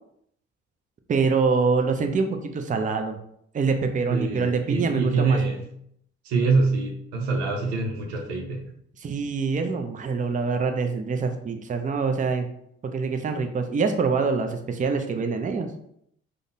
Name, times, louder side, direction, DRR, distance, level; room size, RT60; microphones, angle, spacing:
voice 1, 1.1-3.2 3.5-5.4 9.0-12.5 12.8-15.7, right 4 dB, 25° right, 6 dB, 0.5 m, -25 dB
voice 2, 4.1-5.7 6.2-8.6, right 3 dB, 90° right, 2 dB, 0.6 m, -25 dB
3.6 x 2.0 x 2.7 m, 0.71 s
hypercardioid pair, 50°, 31 cm